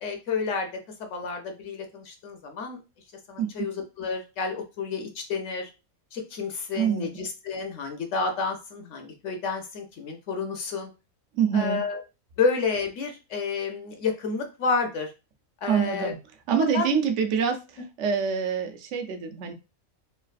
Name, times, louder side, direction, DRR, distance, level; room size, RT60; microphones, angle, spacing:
voice 1, 0.0-2.8 3.3-5.7 6.1-10.9 11.5-12.0 12.4-15.1 15.6-16.1 16.6-16.9, left 4 dB, 65° left, 4 dB, 0.9 m, -30 dB
voice 2, 3.4-3.7 6.7-7.1 11.3-11.8 15.7-16.2 16.5-17.6 18.0-19.5, right 7 dB, 70° right, 6 dB, 0.8 m, -25 dB
3.2 x 2.3 x 2.4 m, 0.28 s
omnidirectional pair, 1.5 m